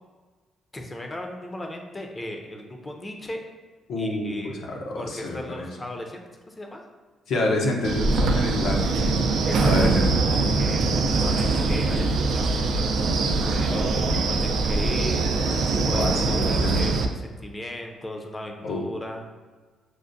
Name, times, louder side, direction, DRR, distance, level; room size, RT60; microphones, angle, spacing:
voice 1, 0.7-3.4 4.0-4.6 5.0-6.8 9.4-9.9 10.3-13.9 14.3-15.3 15.8-19.2, left 1 dB, 20° left, 3 dB, 0.6 m, -36 dB
voice 2, 3.9-5.7 7.3-9.2 9.6-10.1 13.7-14.0 15.9-17.0 18.6-18.9, left 2 dB, 70° left, -1 dB, 0.8 m, -28 dB
Wind, 7.8-17.0, right 3 dB, 75° right, 0.4 m, -23 dB
6.3 x 2.1 x 2.6 m, 1.4 s
cardioid pair, 90°, 0 cm